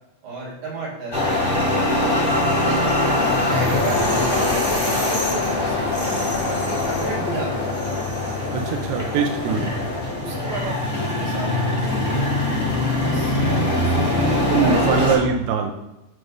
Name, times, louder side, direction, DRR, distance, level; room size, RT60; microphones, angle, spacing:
voice 1, 0.2-1.2 2.0-2.2 2.6-2.8 3.5-5.9 6.4-7.9 9.5-9.6 10.2-12.3 12.9-13.4 13.8-15.1, right 3 dB, 65° right, -4 dB, 3.6 m, -32 dB
sound 1, 1.1-15.2, left 2 dB, 20° left, 0.5 m, -22 dB
sound 2, 2.9-9.7, left 7 dB, 90° left, 3.0 m, -37 dB
voice 2, 8.5-9.7 14.3-15.7, right 6 dB, 85° right, 3 dB, 2.3 m, -22 dB
7.9 x 3.3 x 5.0 m, 0.92 s
omnidirectional pair, 5.0 m